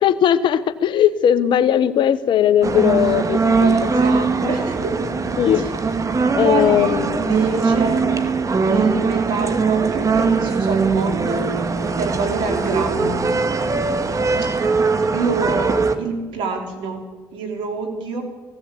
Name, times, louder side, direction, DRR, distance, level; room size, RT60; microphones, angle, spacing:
voice 1, 0.0-3.7 5.4-5.7 6.4-7.2, left 10 dB, 70° left, 13 dB, 1.3 m, -18 dB
sound 1, 2.6-16.0, right 4 dB, 40° right, 2.1 m, -20 dB
voice 2, 3.5-5.0 5.5-5.7 6.4-8.1 8.6-11.5 12.0-13.3 15.1-17.0 17.3-18.2, right 4 dB, 85° right, 5 dB, 4.2 m, -26 dB
19.5 x 16.5 x 8.7 m, 1.3 s
supercardioid pair, 65°, 8 cm